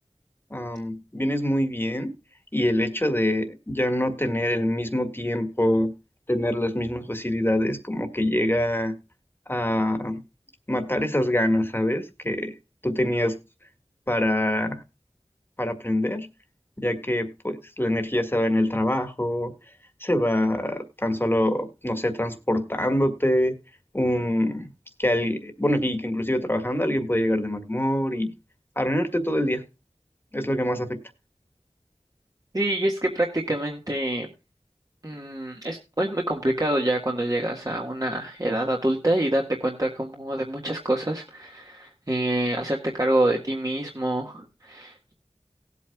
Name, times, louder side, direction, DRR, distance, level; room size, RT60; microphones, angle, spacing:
voice 1, 0.5-2.1 2.5-5.9 6.3-9.0 9.5-10.2 10.7-12.5 12.8-13.4 14.1-14.8 15.6-16.3 16.8-19.5 20.0-23.5 23.9-24.7 25.0-28.3 28.7-29.6 30.3-31.0, left 1 dB, 20° left, 1.7 m, -25 dB
voice 2, 32.5-34.3 35.0-45.1, right 1 dB, 35° right, 1.5 m, -26 dB
18.5 x 8.4 x 2.3 m
wide cardioid pair, 45°, 11 cm